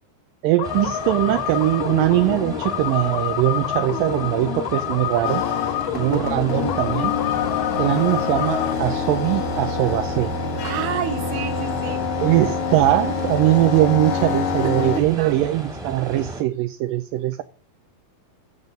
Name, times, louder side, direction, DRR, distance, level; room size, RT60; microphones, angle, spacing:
voice 1, 0.4-5.5 5.9-7.2 7.8-10.3 12.2-17.4, right 15 dB, 75° right, 2.2 m, -21 dB
sound 1, 0.6-8.7, left 12 dB, 85° left, 2.8 m, -28 dB
sound 2, 0.6-16.4, right 1 dB, 15° right, 1.5 m, -35 dB
sound 3, 5.2-15.0, left 5 dB, 55° left, 1.8 m, -26 dB
voice 2, 10.6-12.0 14.9-15.4, right 7 dB, 60° right, 2.8 m, -30 dB
12.5 x 7.2 x 5.1 m
omnidirectional pair, 4.4 m